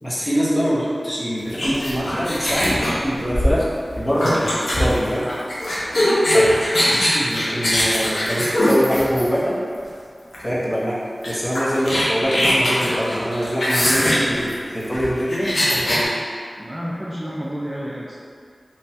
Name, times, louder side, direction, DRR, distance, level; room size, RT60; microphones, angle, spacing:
voice 1, 0.0-3.7 4.0-4.5 4.8-5.2 6.3-6.5 7.1-9.5 10.4-16.1, equal, 20° left, -8 dB, 0.8 m, -23 dB
sound 1, 1.5-9.5 10.3-10.5 10.8-10.9 11.2-16.0, equal, 75° left, 0.6 m, -21 dB
voice 2, 4.8-5.5 16.6-18.2, equal, 20° right, -5 dB, 0.4 m, -30 dB
3.0 x 2.2 x 2.8 m, 2.2 s
cardioid pair, 45°, 0 cm